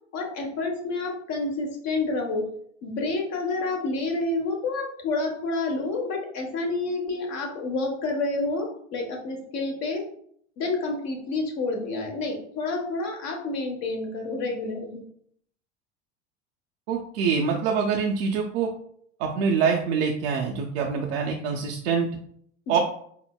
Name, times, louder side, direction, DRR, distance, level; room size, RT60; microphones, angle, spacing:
voice 1, 0.1-2.5 2.8-10.0 10.6-15.0 22.7-22.8, left 3 dB, 50° left, 2 dB, 1.0 m, -29 dB
voice 2, 16.9-18.7 19.2-22.1 22.7-22.8, right 6 dB, 60° right, 1 dB, 0.5 m, -25 dB
5.3 x 2.0 x 2.2 m, 0.65 s
figure-of-eight pair, 70°, 36 cm